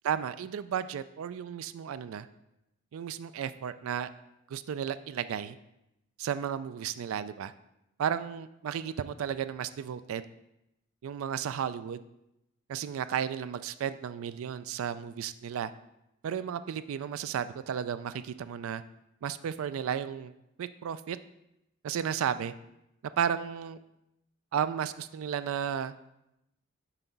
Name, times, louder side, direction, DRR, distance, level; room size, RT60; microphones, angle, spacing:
voice 1, 0.0-2.3 2.9-4.1 4.5-5.6 6.2-7.5 8.0-10.2 11.0-12.0 12.7-15.7 16.2-18.8 19.2-20.3 20.6-21.2 21.8-22.5 23.2-23.8 24.5-25.9, right 8 dB, 70° right, 13 dB, 0.3 m, -33 dB
5.8 x 4.6 x 3.9 m, 0.85 s
head